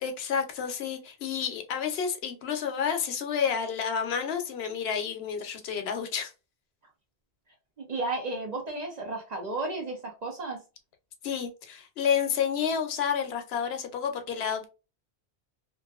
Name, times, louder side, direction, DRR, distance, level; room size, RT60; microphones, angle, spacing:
voice 1, 0.0-6.3 11.2-14.7, left 7 dB, 70° left, 0.8 m, -30 dB
voice 2, 7.8-10.6, right 2 dB, 50° right, 0.6 m, -33 dB
2.5 x 2.3 x 2.2 m
omnidirectional pair, 1.1 m